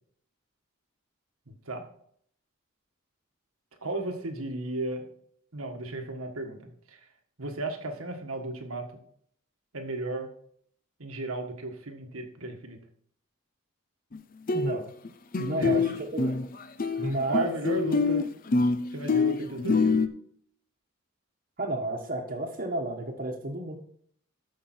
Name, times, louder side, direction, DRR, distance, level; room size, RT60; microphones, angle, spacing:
voice 1, 1.5-1.9 3.8-5.0 5.5-7.1 7.4-8.9 9.7-10.3 11.0-12.8 15.5-15.8 17.0-18.2 18.9-20.0, right 2 dB, 90° right, 5 dB, 1.7 m, -35 dB
sound 1, 14.1-14.2 14.5-15.1 15.3-20.1, left 4 dB, 40° left, 0.6 m, -25 dB
voice 2, 14.5-14.9 15.4-16.4 17.0-17.5 21.6-23.8, right 1 dB, 40° right, -3 dB, 1.3 m, -31 dB
13.5 x 5.9 x 4.4 m, 0.64 s
head